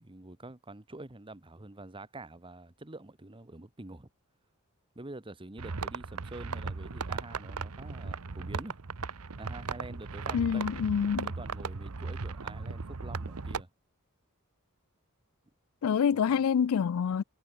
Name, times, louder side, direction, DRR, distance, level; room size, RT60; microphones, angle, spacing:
voice 1, 0.0-4.1 4.9-8.8 9.4-10.8 11.2-13.7 16.1-16.4, right 2 dB, 25° right, 1.3 m, -46 dB
sound 1, 5.6-13.6, right 4 dB, 80° right, 0.9 m, -37 dB
voice 2, 10.3-11.3 15.8-17.2, left 7 dB, 70° left, 0.4 m, -27 dB
head